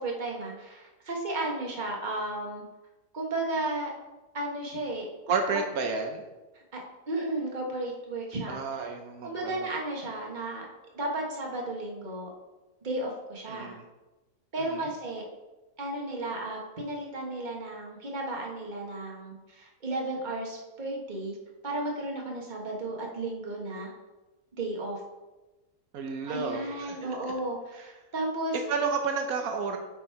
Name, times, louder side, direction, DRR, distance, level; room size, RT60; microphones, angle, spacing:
voice 1, 0.0-2.6 3.1-3.9 4.3-5.1 6.7-6.8 7.1-8.6 9.2-10.6 10.9-12.3 12.8-13.7 14.5-15.2 15.8-21.4 21.6-23.9 24.6-25.0 26.3-28.6, right 2 dB, 35° right, -1 dB, 1.5 m, -34 dB
voice 2, 5.3-6.2 8.5-9.7 13.5-13.8 14.6-14.9 25.9-27.2 28.7-29.8, right 4 dB, 80° right, 4 dB, 1.3 m, -31 dB
8.2 x 4.8 x 4.6 m, 1.1 s
omnidirectional pair, 1.5 m